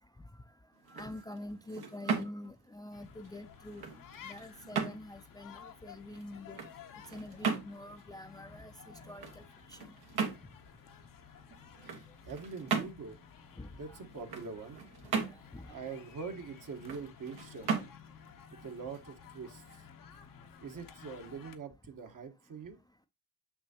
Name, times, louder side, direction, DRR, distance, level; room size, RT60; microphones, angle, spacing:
sound 1, 0.7-19.6, right 6 dB, 80° right, 1.6 m, -39 dB
voice 1, 0.9-3.8 4.2-6.6 7.1-9.9 13.6-14.3 15.2-15.8, left 1 dB, 10° left, 0.5 m, -46 dB
sound 2, 2.9-21.6, left 7 dB, 60° left, 0.9 m, -54 dB
voice 2, 11.8-13.2 13.7-14.8 15.7-17.9 18.6-19.8 20.6-22.8, right 5 dB, 55° right, 1.4 m, -44 dB
6.2 x 6.1 x 2.9 m
cardioid pair, 80°, 37 cm